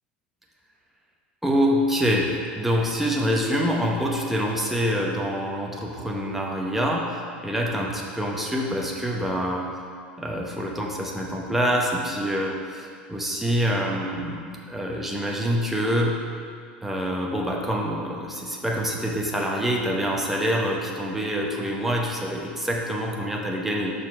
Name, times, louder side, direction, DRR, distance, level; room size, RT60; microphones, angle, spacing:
voice 1, 1.4-9.7 10.2-16.2 16.8-23.9, equal, 5° right, -2 dB, 0.9 m, -26 dB
6.1 x 4.2 x 4.9 m, 2.2 s
figure-of-eight pair, 80°, 5 cm